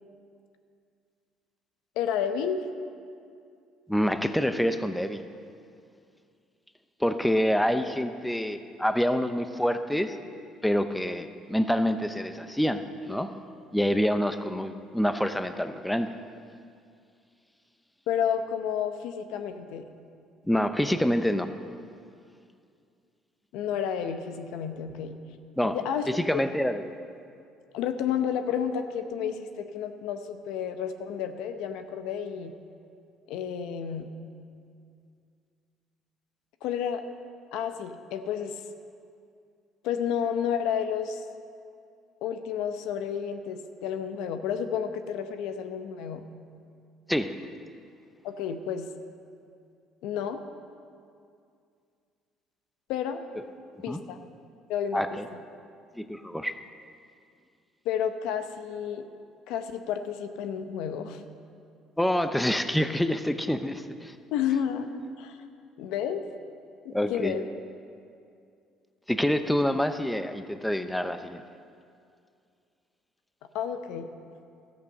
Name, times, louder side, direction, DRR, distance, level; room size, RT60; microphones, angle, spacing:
voice 1, 2.0-2.6 18.1-19.8 23.5-25.2 25.6-26.4 27.7-32.5 33.3-34.1 36.6-37.0 37.5-38.6 39.8-41.2 42.2-46.3 48.2-48.9 50.0-50.4 52.9-53.2 53.8-54.2 54.7-55.4 57.8-59.1 59.5-61.3 64.3-65.4 65.8-66.3 66.8-67.5 73.5-74.1, left 8 dB, 80° left, 8 dB, 0.8 m, -31 dB
voice 2, 3.9-5.2 7.0-10.2 10.6-13.4 13.7-16.1 20.5-21.5 25.6-25.8 26.1-26.8 47.1-47.3 53.9-54.0 54.9-55.3 56.0-56.6 62.0-64.1 66.9-67.3 69.1-71.4, equal, 5° left, 9 dB, 0.6 m, -27 dB
13.5 x 8.3 x 6.5 m, 2.4 s
supercardioid pair, 85°, 0 cm